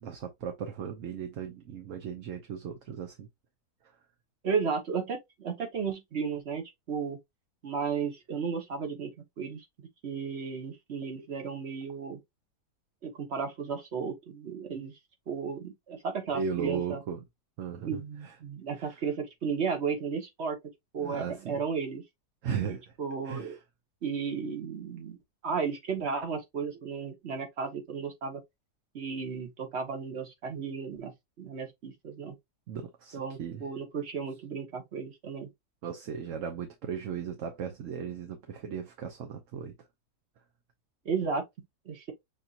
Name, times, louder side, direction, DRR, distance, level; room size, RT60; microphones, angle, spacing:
voice 1, 0.0-3.3 16.3-17.2 17.6-18.3 18.8-19.0 21.0-21.6 22.4-22.9 23.2-23.6 32.7-33.6 35.8-39.7, right 7 dB, 60° right, 1.0 m, -36 dB
voice 2, 4.4-7.2 7.6-9.1 9.4-12.2 13.0-14.9 15.3-17.0 17.8-20.6 20.9-22.0 22.7-23.6 24.0-25.2 25.4-28.4 28.9-32.4 33.1-35.5 41.0-41.4 41.8-42.1, right 5 dB, 45° right, 1.4 m, -34 dB
6.6 x 2.8 x 2.5 m
omnidirectional pair, 1.7 m